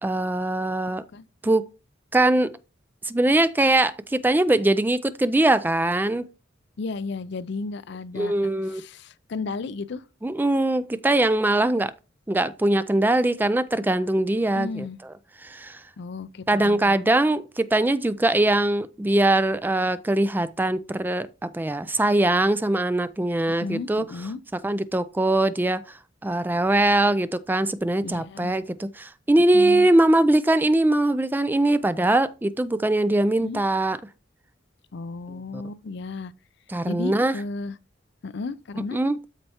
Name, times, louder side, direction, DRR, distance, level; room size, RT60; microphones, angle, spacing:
voice 1, 0.0-1.0 1.4-1.6 2.1-2.6 3.1-6.3 8.2-8.8 10.2-11.9 12.3-14.8 15.4-15.8 16.5-21.3 21.5-24.0 24.6-25.8 26.2-34.0 35.5-35.6 36.7-37.3 38.9-39.2, right 1 dB, 10° right, 0.3 m, -22 dB
voice 2, 6.8-10.1 14.6-15.0 16.0-17.1 23.6-24.4 28.0-28.5 29.5-29.9 33.4-33.6 34.9-36.3 36.9-37.8 38.2-39.0, left 3 dB, 60° left, 0.5 m, -34 dB
13.0 x 4.5 x 2.8 m
head